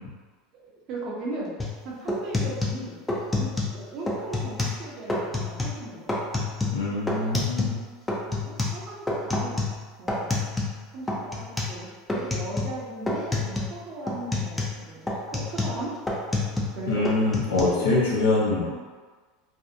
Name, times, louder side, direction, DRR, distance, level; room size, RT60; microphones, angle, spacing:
voice 1, 0.6-1.5 1.8-3.0 3.4-6.4 7.2-7.4 8.3-9.6 10.0-10.3 10.9-15.9 16.7-17.0 17.6-17.8, right 2 dB, 50° right, -5 dB, 0.7 m, -37 dB
sound 1, 1.6-1.8 2.1-3.8 4.1-4.8 5.1-5.8 6.1-7.8 8.1-10.8 11.1-11.8 12.1-12.8 13.1-13.8 14.1-16.8 17.0-17.6, left 2 dB, 10° left, 0.5 m, -28 dB
voice 2, 6.7-7.8 16.9-18.8, left 2 dB, 85° left, -4 dB, 0.7 m, -24 dB
2.5 x 2.0 x 2.6 m, 1.4 s
hypercardioid pair, 100°, 0 cm